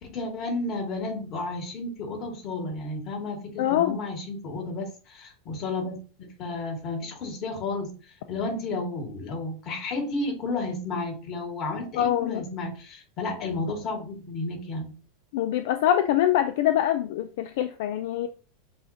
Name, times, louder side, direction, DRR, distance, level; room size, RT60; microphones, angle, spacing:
voice 1, 0.0-6.0 6.4-7.9 8.3-14.9, left 3 dB, 40° left, 1.9 m, -32 dB
voice 2, 3.6-4.0 11.9-12.4 15.3-18.3, left 11 dB, 70° left, 0.4 m, -24 dB
7.4 x 2.6 x 2.8 m
supercardioid pair, 130°, 0 cm